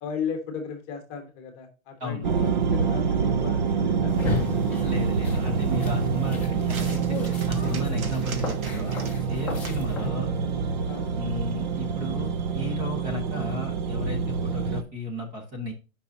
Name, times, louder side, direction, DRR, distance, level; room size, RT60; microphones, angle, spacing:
voice 1, 0.0-4.1 10.9-11.2, left 6 dB, 25° left, 5 dB, 1.3 m, -35 dB
sound 1, 2.2-14.8, right 6 dB, 35° right, 0.6 m, -26 dB
sound 2, 4.1-10.1, left 4 dB, 5° left, 1.1 m, -35 dB
sound 3, 4.5-11.4, right 5 dB, 80° right, 1.8 m, -46 dB
voice 2, 4.8-9.0 9.3-10.3 11.2-15.7, left 2 dB, 15° right, 2 dB, 1.2 m, -34 dB
9.3 x 5.8 x 2.7 m, 0.32 s
hypercardioid pair, 165°, 41 cm